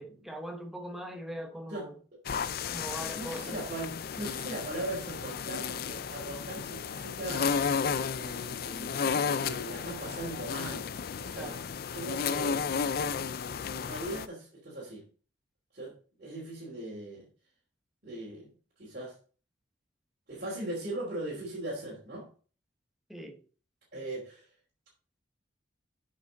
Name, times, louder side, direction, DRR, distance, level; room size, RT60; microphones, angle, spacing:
voice 1, 0.0-2.0 2.7-3.6 11.3-11.6 23.1-23.4, equal, ahead, 5 dB, 1.0 m, -41 dB
sound 1, 2.3-14.3, left 6 dB, 55° left, 0.4 m, -33 dB
voice 2, 3.0-7.5 8.1-8.9 9.4-10.9 11.2-11.6 11.9-12.6 13.8-15.1 15.7-15.9 16.2-17.2 18.0-18.5 18.8-19.1 20.3-22.3 23.9-24.5, right 1 dB, 50° right, -7 dB, 3.0 m, -39 dB
8.2 x 5.4 x 3.8 m, 0.39 s
head